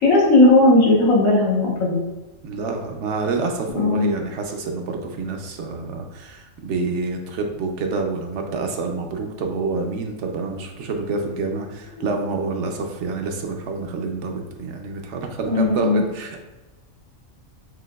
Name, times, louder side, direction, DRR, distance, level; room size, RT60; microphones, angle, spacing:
voice 1, 0.0-2.0 3.7-4.2 15.5-16.0, left 2 dB, 85° left, -4 dB, 1.5 m, -16 dB
voice 2, 2.4-16.4, right 4 dB, 70° right, 3 dB, 0.8 m, -27 dB
5.7 x 2.8 x 2.3 m, 1.1 s
omnidirectional pair, 1.4 m